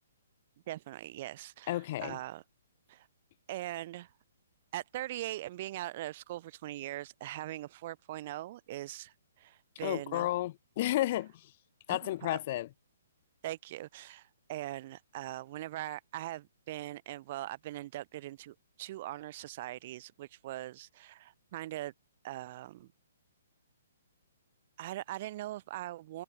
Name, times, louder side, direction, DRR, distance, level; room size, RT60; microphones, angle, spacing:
voice 1, 0.7-2.4 2.9-3.1 3.5-4.1 4.7-10.3 11.9-12.0 12.3-12.4 13.4-21.9 22.2-22.9 24.8-26.2, right 15 dB, 45° right, 5.5 m, -41 dB
voice 2, 1.7-2.2 9.8-11.5 11.9-12.7, left 15 dB, 45° left, 1.9 m, -32 dB
figure-of-eight pair, 130°, 0 cm